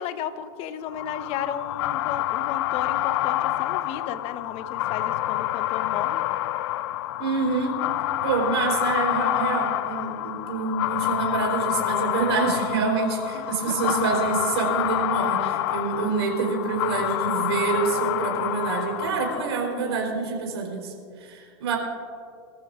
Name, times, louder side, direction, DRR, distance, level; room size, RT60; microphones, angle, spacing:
voice 1, 0.0-6.2 13.3-14.0 15.4-15.6 19.7-20.1, left 8 dB, 45° left, 11 dB, 1.0 m, -34 dB
sound 1, 0.9-19.8, left 15 dB, 65° left, 0.5 m, -27 dB
voice 2, 7.2-7.8 8.2-21.8, right 5 dB, 75° right, 0 dB, 3.8 m, -27 dB
22.5 x 14.5 x 2.5 m, 2.3 s
hypercardioid pair, 110°, 14 cm